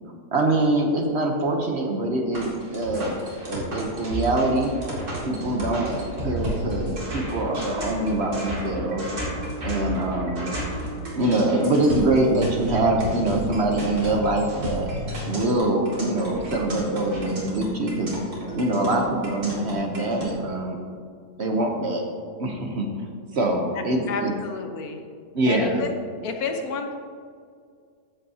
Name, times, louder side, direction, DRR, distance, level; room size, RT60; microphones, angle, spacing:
voice 1, 0.3-3.2 3.4-4.7 5.3-6.0 6.2-9.0 9.6-10.5 11.2-14.9 15.2-18.1 18.5-20.8 21.4-22.0 22.4-23.1 23.3-24.3 25.3-25.9, right 2 dB, 50° right, 2 dB, 1.0 m, -24 dB
sound 1, 2.3-20.3, right 1 dB, 75° right, 2.9 m, -32 dB
voice 2, 24.1-25.0 25.5-25.9 26.2-27.0, left 4 dB, 70° left, 4 dB, 1.4 m, -30 dB
13.0 x 8.0 x 2.8 m, 2.1 s
omnidirectional pair, 1.7 m